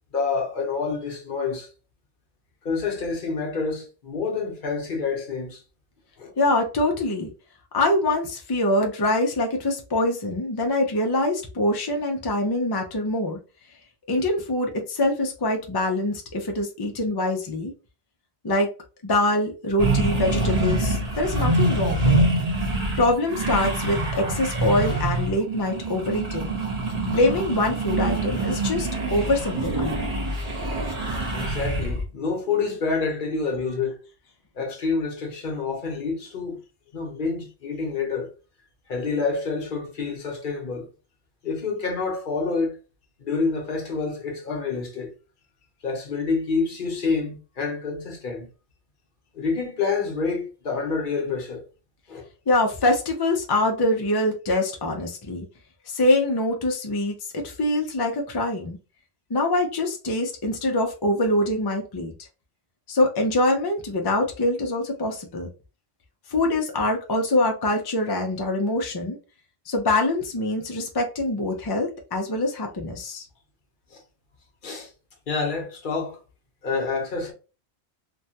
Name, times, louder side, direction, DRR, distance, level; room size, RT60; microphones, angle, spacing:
voice 1, 0.1-1.7 2.6-5.6 6.2-6.3 31.3-34.0 34.5-36.6 36.9-38.3 38.9-40.9 41.4-42.7 43.2-45.1 45.8-48.5 49.3-51.6 52.1-52.3 73.9-74.0 74.6-74.9 75.3-76.2 76.6-77.3, left 4 dB, 55° left, 0.8 m, -27 dB
voice 2, 6.4-7.3 7.7-13.4 14.1-17.7 18.4-18.7 19.0-22.3 23.0-26.6 27.1-30.0 52.5-55.5 55.9-58.8 59.3-62.3 62.9-65.5 66.3-69.2 69.7-73.2, left 1 dB, 35° left, 0.4 m, -24 dB
sound 1, 19.8-32.0, right 2 dB, 40° right, 1.0 m, -25 dB
3.0 x 2.2 x 2.7 m
omnidirectional pair, 1.1 m